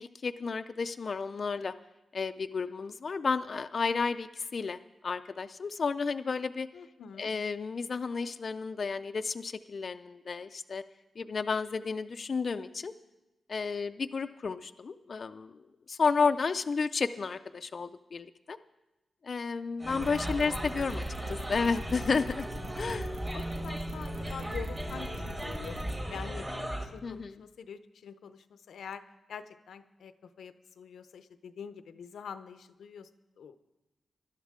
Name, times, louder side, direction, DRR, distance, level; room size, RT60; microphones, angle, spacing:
voice 1, 0.0-1.7 2.1-4.8 5.0-6.7 7.2-10.8 11.2-12.9 13.5-15.6 15.9-18.6 19.2-22.5 22.8-23.1 27.0-27.4, left 4 dB, 45° left, 9 dB, 0.3 m, -32 dB
voice 2, 6.7-7.3 16.2-16.3 20.2-20.4 23.3-25.8 26.1-29.0 29.3-33.1 33.4-33.6, left 7 dB, 90° left, 11 dB, 0.6 m, -45 dB
sound 1, 19.8-26.9, right 1 dB, 20° right, 1.4 m, -37 dB
sound 2, 20.0-26.0, equal, 70° right, 1.6 m, -41 dB
19.0 x 12.0 x 3.6 m, 1.0 s
wide cardioid pair, 120°, 0 cm